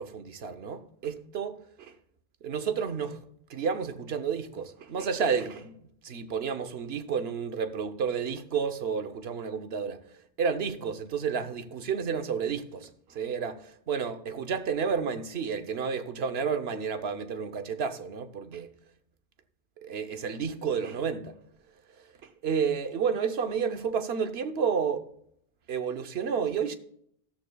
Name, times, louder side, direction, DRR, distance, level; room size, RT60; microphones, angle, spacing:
voice 1, 0.0-1.9 2.4-3.2 3.5-5.8 6.0-10.0 10.4-12.9 13.1-18.7 19.8-21.3 22.4-25.1 25.7-26.8, right 6 dB, 80° right, 1.1 m, -31 dB
14.5 x 13.5 x 2.3 m
omnidirectional pair, 1.0 m